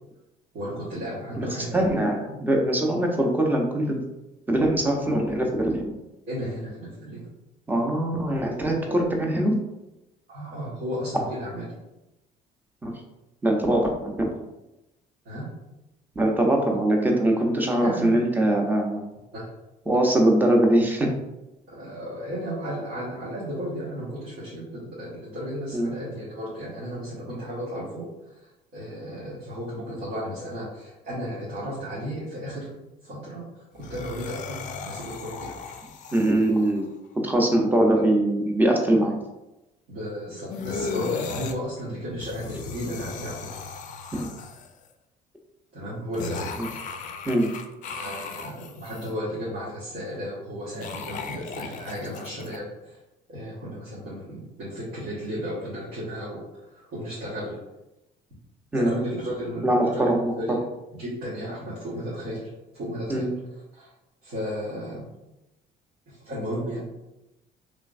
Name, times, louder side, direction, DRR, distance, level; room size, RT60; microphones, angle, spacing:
voice 1, 0.5-2.1 6.3-7.3 8.9-9.0 10.3-11.7 15.2-15.5 17.8-18.2 19.3-19.5 21.7-28.3 28.7-32.7 33.0-35.5 37.9-38.0 39.9-43.6 45.7-46.6 47.9-53.0 53.3-57.6 58.7-60.7 61.0-63.3 63.7-63.9 64.2-65.0 66.1-66.8, equal, 80° right, -10 dB, 1.4 m, -34 dB
voice 2, 1.7-4.0 4.5-5.9 7.7-9.6 12.8-12.9 13.4-14.3 16.2-19.0 19.9-21.1 25.7-25.9 36.1-36.9 37.2-39.2 44.1-44.3 46.6-46.7 47.3-47.5 58.7-58.9 59.6-60.3 63.1-63.3, right 1 dB, 10° right, 1 dB, 0.6 m, -22 dB
sound 1, 33.7-36.8 40.5-41.6 42.1-44.9 46.1-49.1 50.6-52.6, left 5 dB, 50° left, 0.4 m, -36 dB
3.3 x 3.0 x 2.4 m, 0.96 s
cardioid pair, 110°, 17 cm